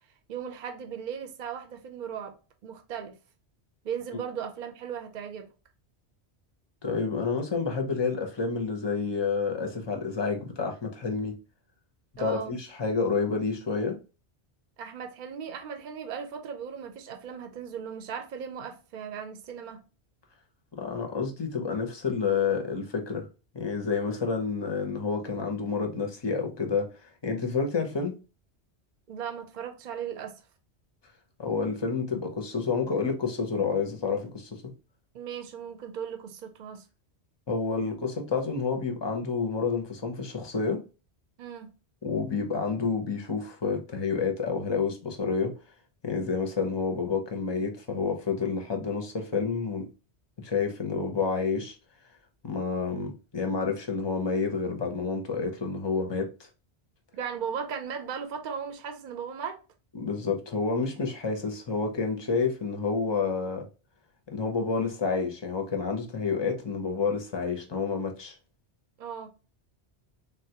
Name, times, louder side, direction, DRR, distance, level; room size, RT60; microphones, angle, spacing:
voice 1, 0.3-2.3 2.6-3.2 3.8-5.5 12.2-12.6 14.8-19.8 29.1-30.4 35.1-36.8 41.4-41.7 57.2-59.6 69.0-69.3, right 7 dB, 55° right, 0.6 m, -37 dB
voice 2, 6.8-11.3 12.2-14.0 20.8-23.3 23.5-26.9 27.2-28.1 31.4-34.7 37.5-40.8 42.0-45.5 46.0-49.9 50.4-51.8 52.4-56.3 59.9-63.6 64.3-68.3, left 5 dB, 35° left, 0.4 m, -29 dB
3.5 x 2.2 x 2.7 m
omnidirectional pair, 1.1 m